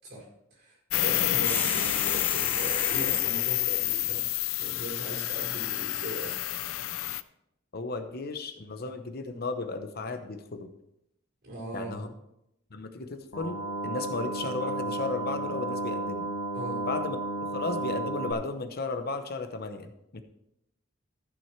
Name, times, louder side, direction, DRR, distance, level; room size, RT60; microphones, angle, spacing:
voice 1, 0.0-4.2 4.6-6.4 11.4-12.0 16.5-16.8, right 1 dB, 55° right, -1 dB, 4.6 m, -39 dB
sound 1, 0.9-7.2, left 16 dB, 85° left, 0.4 m, -28 dB
sound 2, 1.4-3.3, left 2 dB, 10° left, 1.6 m, -35 dB
voice 2, 7.7-10.7 11.7-12.1 12.7-16.3 16.9-20.2, left 3 dB, 50° left, 8 dB, 0.9 m, -34 dB
sound 3, 13.3-18.3, right 2 dB, 65° left, 1.5 m, -33 dB
14.5 x 6.2 x 4.5 m, 0.81 s
head